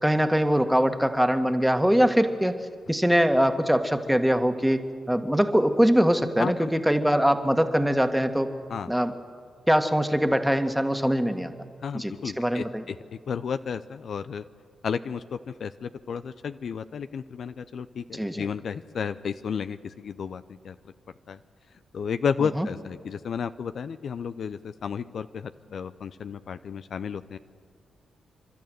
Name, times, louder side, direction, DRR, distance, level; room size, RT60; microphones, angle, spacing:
voice 1, 0.0-2.6 2.9-4.8 5.1-8.5 8.9-9.2 9.7-11.5 11.9-12.8 18.1-18.5 22.6-22.7, equal, 5° right, 7 dB, 1.8 m, -22 dB
voice 2, 11.8-14.4 14.8-20.8 21.3-21.4 21.9-27.4, left 6 dB, 65° left, 11 dB, 0.5 m, -32 dB
29.0 x 12.5 x 9.3 m, 2.1 s
hypercardioid pair, 45°, 0 cm